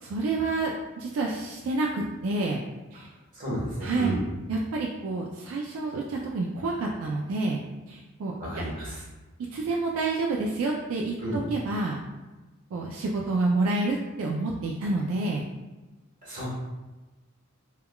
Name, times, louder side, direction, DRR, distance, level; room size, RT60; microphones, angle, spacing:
voice 1, 0.0-2.6 2.9-3.1 3.8-4.2 4.5-7.6 7.9-8.3 9.5-12.0 12.7-15.4, right 3 dB, 75° right, -1 dB, 0.3 m, -28 dB
voice 2, 3.3-4.2 8.4-9.0 11.2-11.4 16.2-16.5, equal, 40° right, -8 dB, 1.2 m, -32 dB
3.5 x 2.2 x 2.2 m, 1.1 s
head